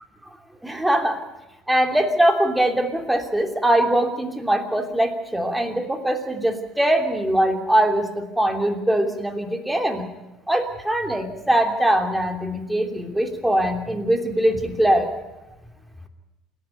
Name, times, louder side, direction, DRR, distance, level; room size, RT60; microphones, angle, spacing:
voice 1, 0.6-1.2 1.7-10.0 10.5-15.1, right 1 dB, 5° right, 4 dB, 3.0 m, -22 dB
28.0 x 11.5 x 9.2 m, 1.0 s
figure-of-eight pair, 65°, 0 cm